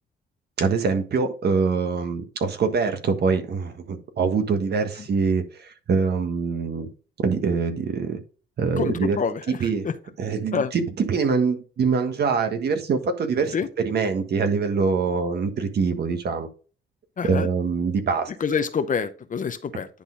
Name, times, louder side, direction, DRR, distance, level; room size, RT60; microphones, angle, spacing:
voice 1, 0.6-6.9 7.2-8.2 8.6-9.2 9.5-9.9 10.2-16.5 17.2-18.3, right 5 dB, 55° right, 1.4 m, -24 dB
voice 2, 8.8-9.9 10.5-10.7 13.5-13.7 17.2-17.5 18.4-19.9, left 6 dB, 40° left, 0.8 m, -26 dB
10.5 x 4.0 x 3.9 m
cardioid pair, 90°, 20 cm